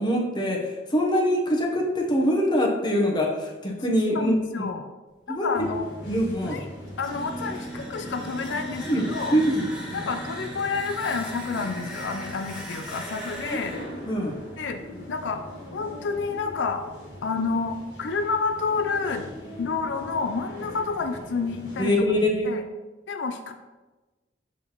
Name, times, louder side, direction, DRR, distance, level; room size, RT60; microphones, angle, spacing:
voice 1, 0.0-4.7 5.3-5.6 6.1-6.6 8.9-9.7 13.4-13.6 14.0-14.3 21.8-22.5, equal, 25° left, -1 dB, 0.9 m, -24 dB
voice 2, 4.1-4.9 5.3-5.9 6.5-6.7 7.0-9.4 9.9-13.7 14.6-14.8 15.1-15.4 15.7-16.8 17.2-19.3 19.6-21.9 22.4-22.6 23.1-23.5, left 4 dB, 90° left, 6 dB, 0.5 m, -29 dB
sound 1, 5.5-22.0, left 1 dB, 70° left, 1.6 m, -42 dB
sound 2, 6.9-15.7, equal, 5° right, 1.6 m, -41 dB
sound 3, 7.1-15.5, right 1 dB, 80° right, 1.9 m, -41 dB
6.1 x 5.7 x 3.0 m, 1.2 s
head